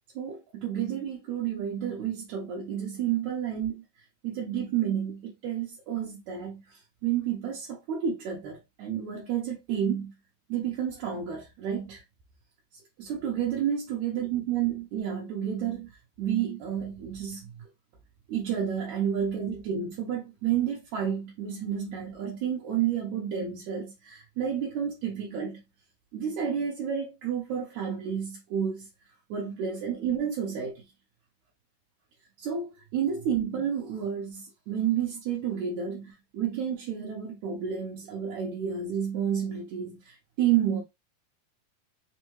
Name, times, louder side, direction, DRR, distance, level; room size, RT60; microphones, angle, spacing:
voice 1, 0.2-3.8 4.2-10.1 10.5-12.0 13.0-15.9 16.2-17.5 18.3-25.6 26.1-28.9 29.3-30.8 32.4-40.8, right 8 dB, 75° right, 1.8 m, -30 dB
5.4 x 2.2 x 3.0 m
omnidirectional pair, 4.1 m